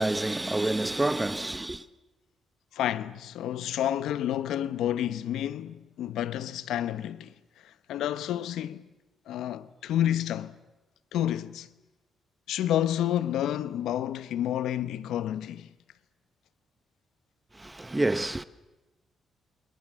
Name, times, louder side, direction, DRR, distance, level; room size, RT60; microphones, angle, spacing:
voice 1, 0.0-1.8 17.6-18.4, right 2 dB, 10° right, 0.9 m, -28 dB
voice 2, 2.7-7.3 7.6-8.9 9.3-10.5 11.1-11.7 12.5-15.7, left 11 dB, 90° left, 1.1 m, -30 dB
28.0 x 25.0 x 7.6 m
cardioid pair, 140°, 0 cm